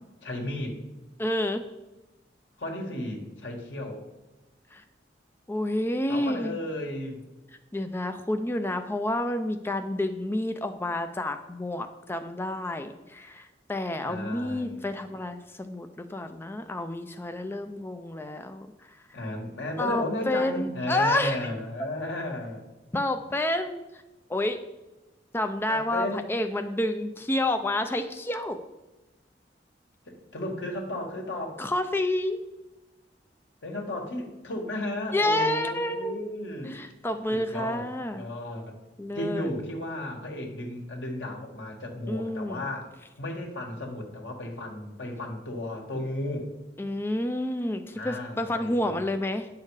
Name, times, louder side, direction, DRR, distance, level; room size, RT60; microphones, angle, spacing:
voice 1, 0.2-0.8 2.6-4.0 6.1-7.2 14.1-14.9 19.1-22.6 25.7-26.2 30.1-31.6 33.6-36.8 37.3-37.9 38.1-38.8 39.1-42.9 43.2-46.5 47.9-49.0, left 1 dB, 85° left, 1 dB, 1.8 m, -34 dB
voice 2, 1.2-1.6 4.7-4.8 5.5-6.5 7.7-18.7 19.8-21.4 22.9-23.8 24.3-24.6 25.3-28.6 31.6-32.4 35.1-36.3 36.6-38.3 39.0-39.5 42.1-42.6 46.8-49.5, left 1 dB, 15° left, 7 dB, 0.4 m, -29 dB
9.5 x 6.6 x 4.8 m, 1.1 s
head